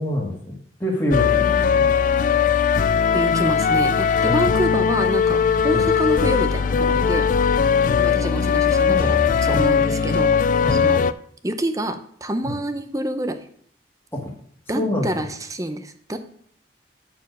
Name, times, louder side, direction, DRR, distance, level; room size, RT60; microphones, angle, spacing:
voice 1, 0.0-1.9 4.3-4.6 5.7-5.9 8.2-8.3 8.9-9.1 9.5-10.0 10.6-10.9 12.4-12.5 14.1-14.3 14.7-15.3, left 1 dB, 15° left, -2 dB, 1.6 m, -26 dB
sound 1, 1.1-11.1, left 6 dB, 45° left, 0.3 m, -19 dB
voice 2, 3.1-7.3 8.0-10.4 10.7-11.0 11.4-13.5 14.7-16.2, right 1 dB, 20° right, 9 dB, 0.6 m, -27 dB
9.5 x 4.5 x 6.3 m, 0.64 s
head